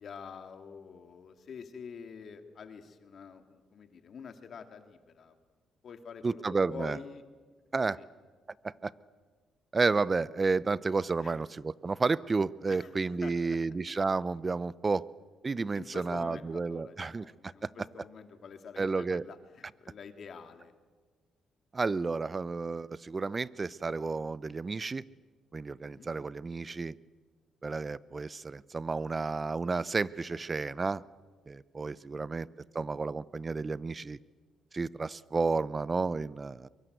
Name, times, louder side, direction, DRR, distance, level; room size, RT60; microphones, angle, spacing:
voice 1, 0.0-5.3 5.8-7.2 8.0-8.1 11.2-11.4 12.7-13.6 15.7-19.4 19.8-20.7 25.8-26.1 31.9-32.3, left 6 dB, 55° left, 6 dB, 2.4 m, -47 dB
voice 2, 6.2-7.0 7.7-8.0 8.6-8.9 9.7-15.0 15.4-17.7 18.8-19.2 21.7-25.0 25.5-26.9 27.6-31.0 31.5-32.5 32.7-34.2 34.7-36.7, right 4 dB, 30° right, 19 dB, 0.6 m, -31 dB
23.5 x 23.0 x 8.0 m, 1.5 s
cardioid pair, 90°, 0 cm